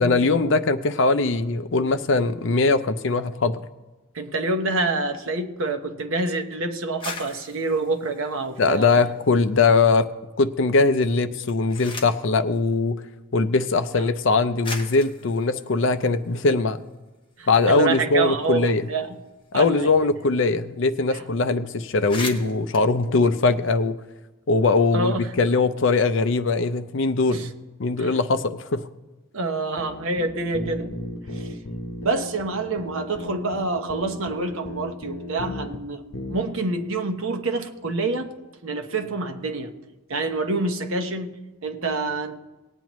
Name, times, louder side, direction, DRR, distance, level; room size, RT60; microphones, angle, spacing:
voice 1, 0.0-3.6 8.6-10.1 10.4-13.0 13.3-16.8 17.5-18.9 19.5-24.0 24.5-27.5 27.8-28.9, left 3 dB, 60° left, 0.5 m, -21 dB
voice 2, 4.1-9.0 17.4-19.2 19.5-19.9 21.1-21.2 24.9-25.3 27.3-27.5 28.0-28.2 29.3-30.9 31.3-31.6 32.0-38.3 38.6-39.7 40.1-42.4, right 3 dB, 70° right, 1.0 m, -27 dB
sound 1, 6.8-9.4 9.8-10.5 11.2-12.3 13.4-13.5 14.2-14.3 14.6-16.9 17.3-17.4 17.7-20.3 20.5-20.7 20.9-21.2 21.6-21.7 21.9-24.1, left 3 dB, 25° left, 1.1 m, -40 dB
sound 2, 29.8-35.8 36.1-36.4, left 1 dB, 75° left, 1.0 m, -35 dB
19.0 x 8.9 x 3.1 m
head